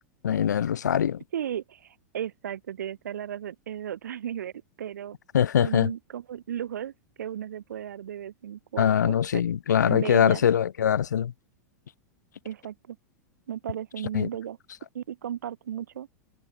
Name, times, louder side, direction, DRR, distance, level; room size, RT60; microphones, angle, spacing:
voice 1, 0.2-1.2 5.3-5.9 8.8-11.3 14.1-14.3, left 9 dB, 85° left, 0.6 m, -23 dB
voice 2, 1.3-4.5 4.8-5.2 5.6-6.9 7.2-9.2 9.9-10.4 12.4-13.0 13.5-14.6 14.9-16.1, right 10 dB, 80° right, 1.5 m, -35 dB
hypercardioid pair, 100°, 9 cm